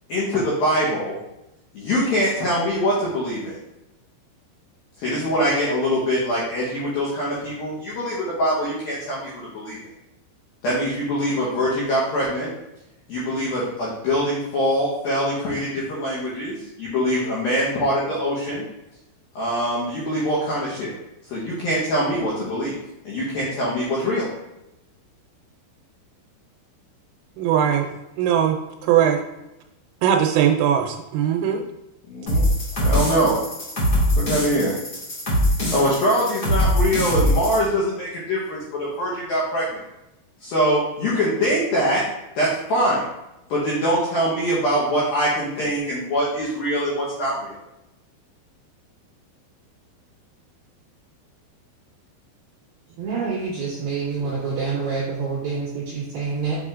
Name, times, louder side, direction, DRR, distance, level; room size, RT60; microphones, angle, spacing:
voice 1, 0.1-1.2 1.7-3.6 5.0-9.8 10.6-12.5 13.1-18.6 19.4-20.9 21.3-22.7 23.0-24.3 32.1-32.5 32.8-33.4 34.2-34.7 35.7-39.8 40.4-42.0 42.4-43.0 43.5-47.6, equal, 80° left, -7 dB, 2.1 m, -23 dB
voice 2, 27.4-27.9 28.2-29.2 30.0-31.6, right 9 dB, 85° right, 3 dB, 3.2 m, -20 dB
sound 1, 32.3-37.6, equal, 60° left, 1.0 m, -22 dB
voice 3, 53.0-56.6, right 5 dB, 60° right, -7 dB, 2.8 m, -27 dB
7.1 x 5.5 x 2.5 m, 0.92 s
omnidirectional pair, 5.8 m